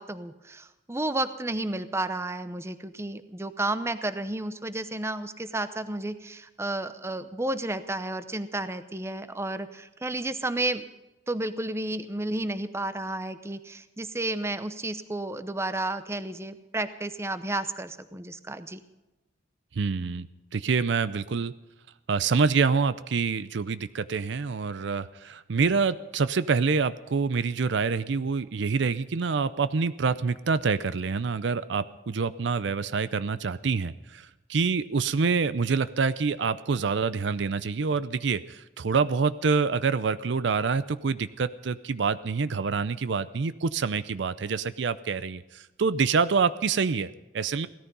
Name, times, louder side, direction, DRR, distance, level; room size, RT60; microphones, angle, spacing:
voice 1, 0.0-10.8 11.3-18.8, right 2 dB, 15° right, 12 dB, 0.7 m, -32 dB
voice 2, 19.7-20.3 20.5-21.5 22.1-47.7, right 5 dB, 65° right, 15 dB, 0.5 m, -26 dB
17.0 x 13.5 x 5.4 m, 1.0 s
head